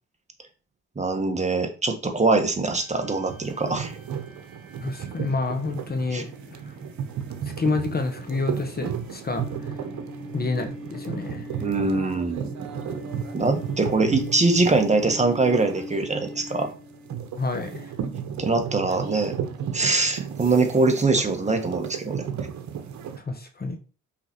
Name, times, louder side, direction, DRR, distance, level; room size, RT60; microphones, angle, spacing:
voice 1, 1.0-3.9 6.1-6.2 11.6-12.5 13.3-16.7 18.4-19.3 19.7-22.2, right 3 dB, 25° right, 4 dB, 1.5 m, -23 dB
sound 1, 2.7-17.2, left 2 dB, ahead, 3.0 m, -43 dB
sound 2, 3.3-23.2, right 8 dB, 70° right, 1.2 m, -34 dB
voice 2, 4.8-6.3 7.6-9.4 10.3-11.5 17.4-17.9 23.3-23.8, left 3 dB, 30° left, 6 dB, 1.2 m, -28 dB
5.8 x 5.0 x 4.4 m, 0.36 s
cardioid pair, 90°, 30 cm